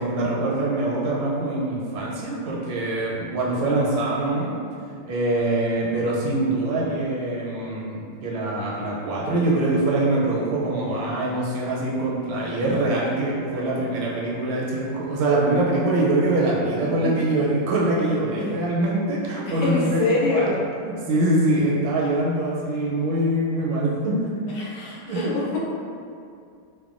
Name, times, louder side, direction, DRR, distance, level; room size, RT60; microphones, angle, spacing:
voice 1, 0.0-4.5 5.1-20.0 20.3-20.5 20.8-24.2 25.1-25.3, right 2 dB, 80° right, -4 dB, 1.3 m, -24 dB
voice 2, 19.4-20.6 24.5-25.6, left 3 dB, 90° left, -6 dB, 1.5 m, -25 dB
3.4 x 2.1 x 2.4 m, 2.4 s
omnidirectional pair, 2.2 m